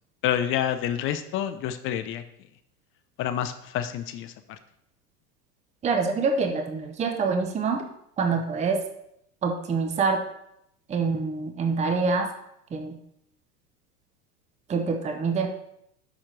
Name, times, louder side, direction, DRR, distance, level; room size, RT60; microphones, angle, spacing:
voice 1, 0.2-2.2 3.2-4.3, left 10 dB, 30° left, 10 dB, 0.4 m, -28 dB
voice 2, 5.8-7.8 8.2-8.8 9.4-10.2 10.9-12.3 12.7-13.0 14.7-15.5, right 4 dB, 15° right, 5 dB, 0.7 m, -25 dB
6.1 x 4.4 x 6.4 m, 0.75 s
hypercardioid pair, 105°, 47 cm